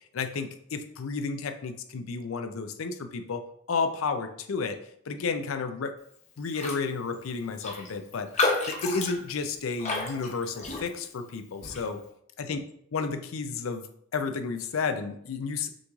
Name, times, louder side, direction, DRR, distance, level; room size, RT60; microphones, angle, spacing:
voice 1, 0.1-3.4 3.7-4.8 5.1-5.9 6.4-12.0 12.5-12.6 12.9-13.8 14.1-15.7, left 4 dB, 80° left, 8 dB, 0.5 m, -32 dB
Raindrop, 6.5-6.8 7.1-7.2 7.6-11.2 11.6-11.9, left 3 dB, 35° left, 0.6 m, -31 dB
6.3 x 3.0 x 2.4 m, 0.69 s
head